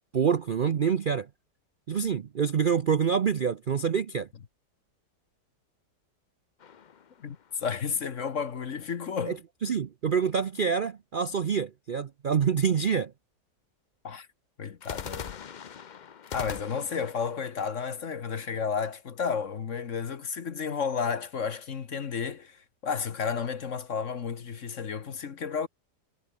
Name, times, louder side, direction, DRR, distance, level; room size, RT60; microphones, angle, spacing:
voice 1, 0.1-1.3 1.9-4.3 9.3-13.1, right 7 dB, 75° right, 0.4 m, -26 dB
sound 1, 6.6-8.0 14.8-18.8, left 7 dB, 75° left, 0.4 m, -43 dB
voice 2, 7.2-9.4 14.0-14.3 14.6-15.4 16.3-25.7, left 6 dB, 50° left, 1.4 m, -32 dB
omnidirectional pair, 1.8 m